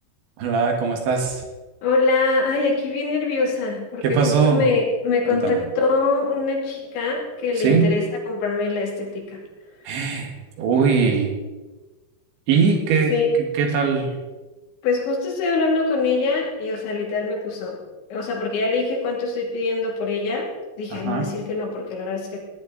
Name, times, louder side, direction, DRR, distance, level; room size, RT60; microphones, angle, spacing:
voice 1, 0.4-1.4 4.0-4.6 5.3-5.6 7.6-8.0 9.9-11.3 12.5-13.1 13.6-14.2 20.9-21.3, right 5 dB, 80° right, 2 dB, 4.1 m, -20 dB
voice 2, 1.8-9.4 13.1-13.3 14.8-17.8 18.1-20.5 20.8-22.4, left 3 dB, 80° left, -2 dB, 5.0 m, -23 dB
17.0 x 10.5 x 4.0 m, 1.2 s
omnidirectional pair, 5.2 m